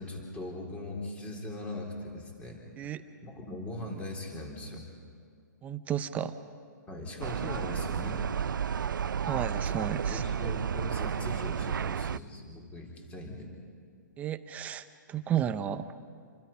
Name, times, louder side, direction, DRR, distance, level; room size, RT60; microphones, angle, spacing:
voice 1, 0.0-2.9 3.2-4.9 6.9-8.2 9.6-9.8 10.1-13.5, left 1 dB, 10° left, 0 dB, 3.7 m, -40 dB
voice 2, 5.6-6.4 9.2-10.2 14.2-15.9, right 10 dB, 15° right, 11 dB, 0.7 m, -33 dB
sound 1, 7.2-12.2, right 7 dB, 90° right, 0.5 m, -32 dB
28.0 x 24.0 x 5.6 m, 2.2 s
hypercardioid pair, 155°, 10 cm